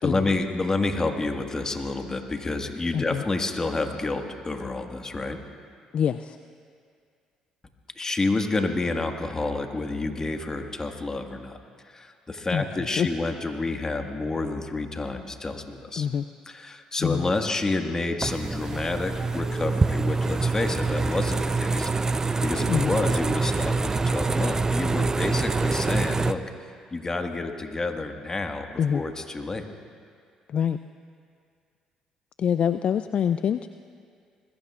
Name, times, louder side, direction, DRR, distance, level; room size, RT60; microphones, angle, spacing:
voice 1, 0.0-5.4 7.9-11.6 11.8-16.1 16.5-26.4 26.9-29.6, left 3 dB, 25° left, 4 dB, 1.7 m, -29 dB
voice 2, 2.9-3.2 5.9-6.4 12.5-12.6 13.0-13.1 16.0-16.2 17.0-17.3 22.7-23.0 28.8-29.0 30.5-30.8 32.4-33.7, left 8 dB, 55° left, 11 dB, 0.4 m, -25 dB
sound 1, 18.2-26.3, right 3 dB, 25° right, 0.5 m, -25 dB
25.5 x 21.0 x 2.5 m, 2.2 s
hypercardioid pair, 55°, 2 cm